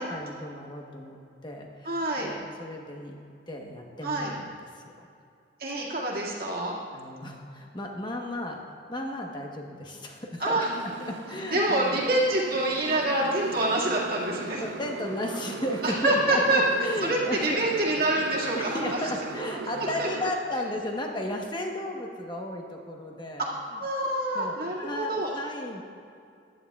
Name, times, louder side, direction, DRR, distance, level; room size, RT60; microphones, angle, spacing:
voice 1, 0.0-3.2 3.5-4.5 5.0-5.1 6.9-8.6 8.9-12.0 14.6-17.6 18.5-23.8 24.3-25.8, left 1 dB, 25° left, 1 dB, 1.0 m, -34 dB
voice 2, 1.9-2.3 4.0-4.3 5.6-6.8 10.4-10.7 11.5-14.6 15.8-16.6 17.0-18.8 20.0-20.1 23.7-25.3, right 1 dB, 55° right, -4 dB, 2.0 m, -26 dB
Motorcycle, 10.6-20.3, right 3 dB, 75° right, 0.5 m, -38 dB
15.0 x 11.0 x 2.3 m, 2.4 s
head